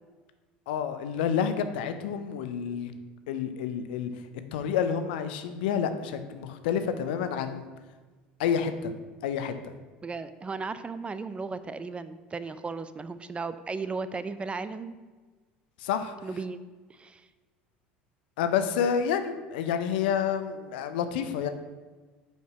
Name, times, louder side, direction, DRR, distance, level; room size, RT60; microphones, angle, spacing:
voice 1, 0.7-2.9 3.3-4.1 4.5-7.6 8.4-8.9 9.2-9.7 15.8-16.2 18.4-21.5, left 7 dB, 70° left, 9 dB, 0.6 m, -29 dB
voice 2, 10.0-15.0 16.2-16.6 16.9-17.2, right 4 dB, 20° right, 13 dB, 0.4 m, -35 dB
5.6 x 4.5 x 5.9 m, 1.3 s
hypercardioid pair, 75°, 5 cm